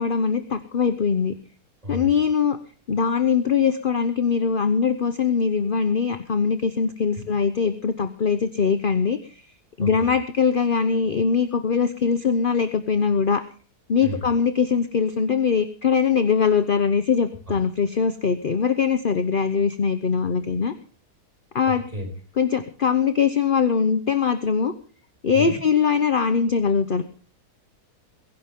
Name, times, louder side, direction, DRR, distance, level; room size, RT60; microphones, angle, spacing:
voice 1, 0.0-1.3 1.9-2.6 2.9-9.4 9.8-13.4 13.9-20.7 21.5-21.8 22.4-24.7 25.2-27.0, left 6 dB, 40° left, 10 dB, 0.9 m, -22 dB
voice 2, 1.8-2.2 7.2-7.3 9.8-10.1 14.0-14.2 17.5-17.6 21.7-22.1 25.3-25.6, equal, 20° right, 2 dB, 5.5 m, -32 dB
23.0 x 11.5 x 3.6 m, 0.40 s
omnidirectional pair, 1.7 m